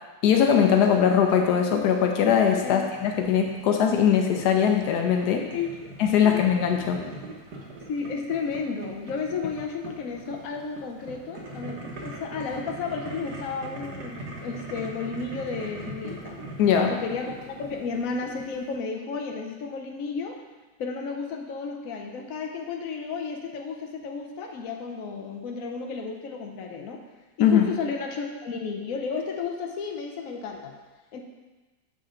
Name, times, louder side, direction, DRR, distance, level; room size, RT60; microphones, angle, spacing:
voice 1, 0.2-5.5 6.0-7.0 16.6-16.9 27.4-27.7, left 8 dB, 85° left, 3 dB, 1.3 m, -21 dB
Boiling, 0.7-18.7, right 2 dB, 85° right, 1.7 m, -42 dB
voice 2, 5.5-5.9 6.2-6.5 7.9-16.4 16.9-20.4 20.8-27.0 27.4-30.7 31.1-31.2, left 5 dB, 65° left, 2 dB, 1.1 m, -33 dB
7.1 x 5.4 x 3.8 m, 1.2 s
omnidirectional pair, 1.7 m